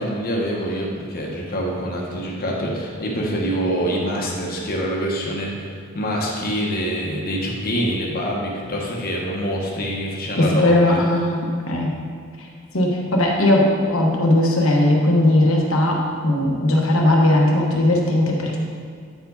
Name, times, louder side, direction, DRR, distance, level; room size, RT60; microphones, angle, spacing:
voice 1, 0.0-11.0, equal, 45° left, -2 dB, 1.2 m, -25 dB
voice 2, 10.4-11.9 12.7-18.6, left 1 dB, 80° left, -1 dB, 1.2 m, -18 dB
9.1 x 4.8 x 4.0 m, 2.2 s
head